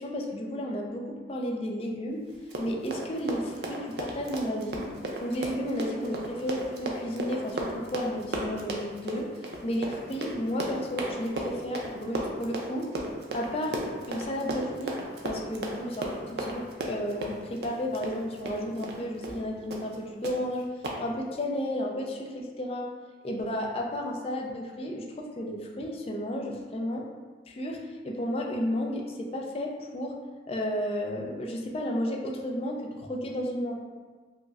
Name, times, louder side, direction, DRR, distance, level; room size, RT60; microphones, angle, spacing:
voice 1, 0.0-2.3 2.6-4.9 5.2-12.9 13.3-13.8 14.1-20.7 21.0-22.9 23.2-27.1 27.5-30.1 30.5-33.7, equal, 35° left, 0 dB, 0.3 m, -32 dB
Run, 2.3-19.0 19.2-19.4 19.7-20.0 20.2-20.3 20.8-21.0, right 1 dB, 65° right, 0.5 m, -35 dB
4.9 x 2.0 x 2.4 m, 1.4 s
head